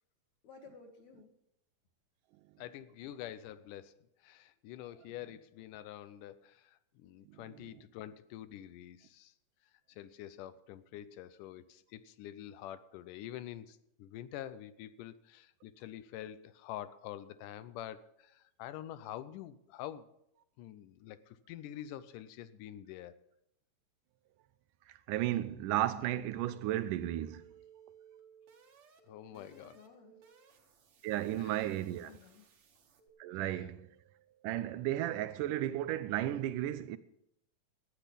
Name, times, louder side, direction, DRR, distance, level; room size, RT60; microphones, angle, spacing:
voice 1, 0.4-1.3 29.3-30.2 31.3-31.5 31.8-32.5, left 4 dB, 65° left, 2.6 m, -56 dB
voice 2, 2.6-4.0 4.2-9.3 9.9-20.1 20.6-23.2 29.1-29.8 31.4-31.7 33.3-33.7, left 12 dB, 85° left, 2.3 m, -47 dB
voice 3, 7.3-7.7 25.1-27.4 31.0-32.1 33.2-33.9 34.4-37.0, right 13 dB, 85° right, 2.3 m, -34 dB
sound 1, 26.0-33.1, right 8 dB, 60° right, 2.8 m, -61 dB
14.5 x 10.0 x 5.3 m
omnidirectional pair, 3.7 m